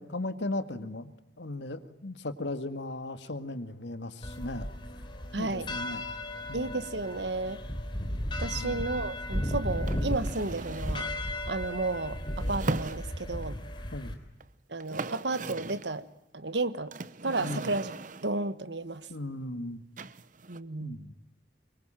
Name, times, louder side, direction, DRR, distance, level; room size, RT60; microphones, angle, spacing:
voice 1, 0.0-4.7 5.4-6.0 6.5-6.8 8.5-8.8 13.9-14.2 17.4-17.7 19.1-19.8 20.8-21.1, left 2 dB, 85° left, 10 dB, 1.9 m, -37 dB
sound 1, 4.2-14.1, left 1 dB, 25° left, 3.4 m, -35 dB
voice 2, 5.3-5.7 6.5-7.6 8.4-13.6 14.7-16.1 16.3-16.9 17.2-17.9 18.2-19.1 20.5-21.0, right 3 dB, 80° right, 13 dB, 1.4 m, -33 dB
sound 2, 9.9-11.1 12.4-13.5 14.4-14.5 14.7-15.9 16.9-18.4 20.0-20.6, right 3 dB, 45° right, 0.9 m, -38 dB
24.5 x 23.0 x 9.0 m, 0.85 s
head